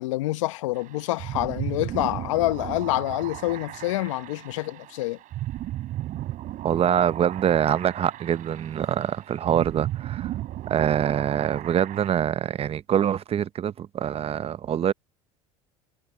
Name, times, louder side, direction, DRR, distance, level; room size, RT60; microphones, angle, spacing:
voice 1, 0.0-5.2, left 18 dB, 80° left, 1.1 m, -27 dB
sound 1, 0.7-12.1, right 14 dB, 55° right, 4.5 m, -35 dB
voice 2, 6.6-10.3 10.7-14.9, right 9 dB, 40° right, 0.9 m, -24 dB
hypercardioid pair, 75°, 16 cm